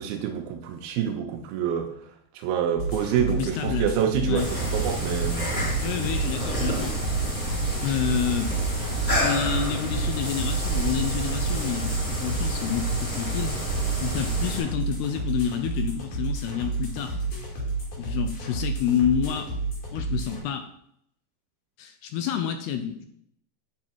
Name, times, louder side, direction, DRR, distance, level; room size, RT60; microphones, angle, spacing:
voice 1, 0.0-1.9 2.3-5.5, right 8 dB, 85° right, 4 dB, 2.1 m, -27 dB
sound 1, 2.8-20.4, right 3 dB, 50° left, 3.6 m, -31 dB
voice 2, 3.2-3.9 4.2-4.5 5.8-7.1 7.8-8.5 9.1-13.6 14.0-17.2 18.0-19.5 19.9-20.7 21.8-23.1, left 8 dB, 80° left, 8 dB, 2.5 m, -29 dB
sound 2, 4.3-14.6, right 1 dB, 15° left, 3.4 m, -29 dB
8.2 x 6.4 x 4.4 m, 0.72 s
omnidirectional pair, 5.2 m